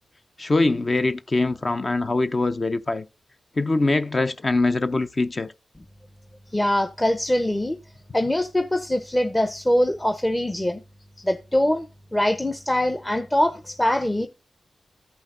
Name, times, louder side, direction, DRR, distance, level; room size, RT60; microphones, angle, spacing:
voice 1, 0.4-3.1 3.6-5.5, left 2 dB, 45° left, 0.6 m, -23 dB
voice 2, 6.5-7.8 8.1-10.8 11.2-14.3, left 1 dB, 15° left, 0.8 m, -23 dB
14.0 x 5.5 x 2.6 m
cardioid pair, 45°, 0 cm